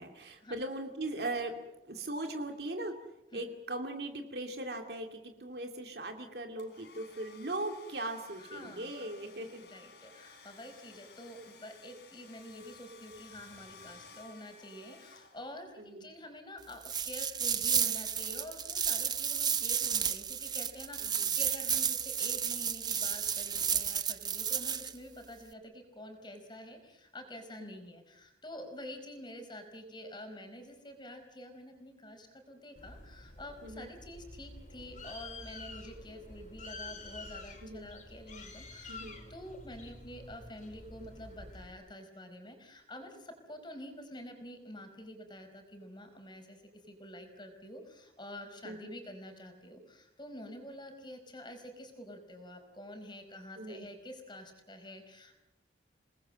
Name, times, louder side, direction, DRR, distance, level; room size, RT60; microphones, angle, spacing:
voice 1, 0.0-1.6 1.8-2.9 3.3-9.6 15.8-16.1 21.0-21.3 27.6-27.8 33.6-33.9 37.6-37.9 38.9-39.2 48.6-49.0 53.6-53.8, right 2 dB, 60° right, 4 dB, 2.5 m, -39 dB
Domestic sounds home sounds, 6.6-15.8, left 4 dB, 70° left, 4.5 m, -56 dB
voice 2, 8.3-39.0 39.3-46.6 46.9-55.4, left 1 dB, 25° left, 6 dB, 4.9 m, -48 dB
sound 1, 16.8-24.9, right 8 dB, 25° right, 0.9 m, -32 dB
Bird, 32.8-41.7, left 2 dB, 45° left, 4.7 m, -48 dB
29.5 x 20.0 x 7.7 m, 0.91 s
head